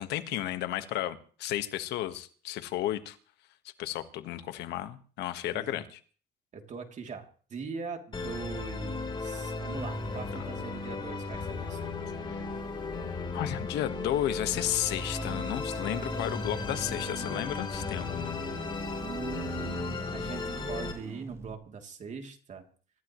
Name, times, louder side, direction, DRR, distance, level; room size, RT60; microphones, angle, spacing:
voice 1, 0.0-3.2 3.8-6.0 13.3-18.4, left 13 dB, 85° left, 10 dB, 1.5 m, -33 dB
voice 2, 5.5-5.8 6.5-11.9 19.0-22.6, right 5 dB, 45° right, 4 dB, 3.0 m, -41 dB
Musical instrument, 8.1-20.9, left 3 dB, 30° left, 3.8 m, -35 dB
sound 1, 15.0-21.5, right 2 dB, 15° right, 1.5 m, -45 dB
25.5 x 14.5 x 3.2 m, 0.42 s
cardioid pair, 110°, 17 cm